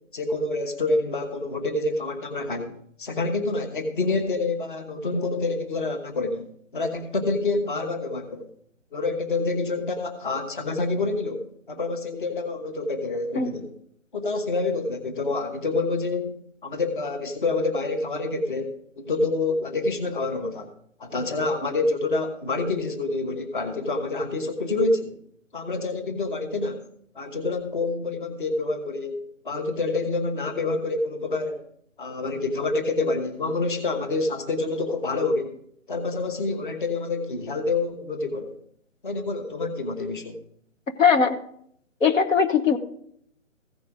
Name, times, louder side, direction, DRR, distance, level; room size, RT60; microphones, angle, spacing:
voice 1, 0.1-8.5 8.9-13.7 14.1-16.3 16.6-20.7 21.0-25.2 25.5-26.8 27.1-31.6 32.0-35.6 35.9-38.6 39.0-40.4, left 3 dB, 40° left, 6 dB, 1.3 m, -27 dB
voice 2, 41.0-41.4 42.0-42.8, left 6 dB, 75° left, 7 dB, 1.4 m, -19 dB
15.5 x 5.3 x 5.0 m, 0.67 s
hypercardioid pair, 170°, 39 cm